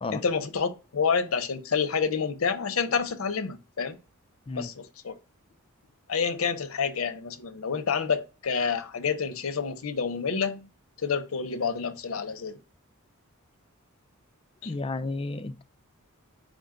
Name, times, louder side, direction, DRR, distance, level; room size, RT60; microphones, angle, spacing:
voice 1, 0.1-4.0 4.5-5.1 6.1-10.7 11.0-12.6 14.6-14.7, left 6 dB, 65° left, 0.6 m, -28 dB
voice 2, 14.6-15.6, left 3 dB, 25° left, 0.3 m, -32 dB
5.1 x 2.2 x 3.7 m
head